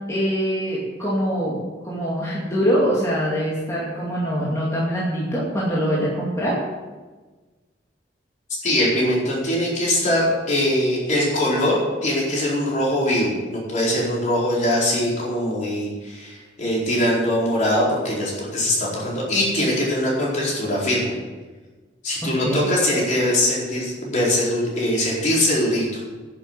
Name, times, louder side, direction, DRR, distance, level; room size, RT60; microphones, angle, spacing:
voice 1, 0.1-1.6 1.8-6.6 22.4-22.7, equal, 15° left, -7 dB, 2.6 m, -23 dB
voice 2, 8.6-21.2 22.0-26.0, left 1 dB, 45° left, -5 dB, 4.5 m, -22 dB
11.0 x 7.4 x 8.3 m, 1.3 s
head